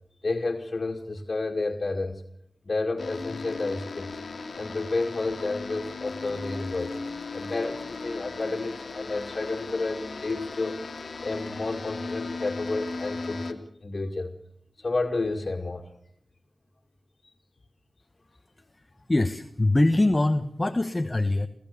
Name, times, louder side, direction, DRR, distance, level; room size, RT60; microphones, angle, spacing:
voice 1, 0.2-2.2 2.6-4.2 4.6-6.9 7.3-10.8 11.2-14.3 14.8-15.9, left 3 dB, 55° left, -1 dB, 2.3 m, -30 dB
sound 1, 3.0-13.5, left 3 dB, 80° left, 1.9 m, -37 dB
voice 2, 19.1-21.5, left 2 dB, 35° left, 8 dB, 1.1 m, -23 dB
28.5 x 15.0 x 7.0 m, 0.71 s
cardioid pair, 45°, 0 cm